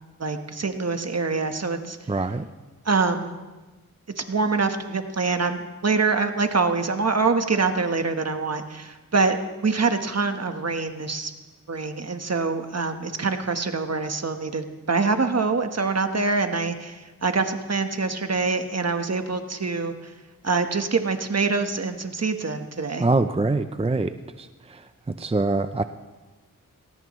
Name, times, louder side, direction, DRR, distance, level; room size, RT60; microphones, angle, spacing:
voice 1, 0.2-2.0 2.8-3.3 4.3-9.4 9.6-11.3 11.7-19.9 20.4-23.1, right 4 dB, 50° right, 7 dB, 1.3 m, -25 dB
voice 2, 2.1-2.5 23.0-24.1 24.4-24.5 25.2-25.8, right 3 dB, 20° right, 10 dB, 0.5 m, -23 dB
20.0 x 18.0 x 3.1 m, 1.2 s
cardioid pair, 60°, 34 cm